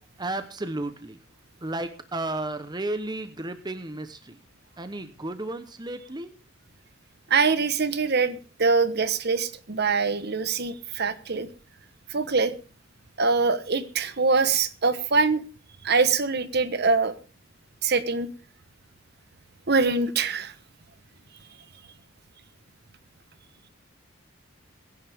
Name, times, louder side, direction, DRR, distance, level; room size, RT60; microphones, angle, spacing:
voice 1, 0.2-1.2 1.6-4.4 4.8-6.3, right 2 dB, 20° right, 9 dB, 0.9 m, -33 dB
voice 2, 7.3-11.5 12.1-12.5 13.2-15.4 15.8-17.1 17.8-18.3 19.7-20.5, right 4 dB, 50° right, 13 dB, 1.2 m, -23 dB
23.0 x 10.5 x 3.6 m, 0.36 s
head